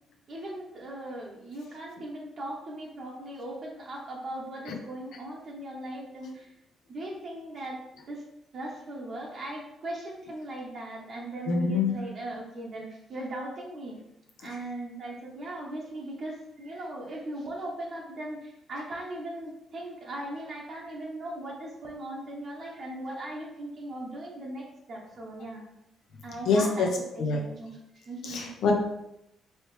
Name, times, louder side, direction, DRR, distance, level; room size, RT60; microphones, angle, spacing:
voice 1, 0.3-6.5 6.9-7.8 8.1-8.2 8.5-14.0 14.4-25.6 26.2-26.9 27.1-27.8 28.0-28.5, right 1 dB, 55° right, -3 dB, 1.0 m, -38 dB
voice 2, 11.5-11.9 26.5-26.9 27.2-27.4 28.2-28.7, left 4 dB, 75° left, 2 dB, 0.8 m, -25 dB
4.3 x 3.1 x 3.2 m, 0.84 s
cardioid pair, 90°, 0 cm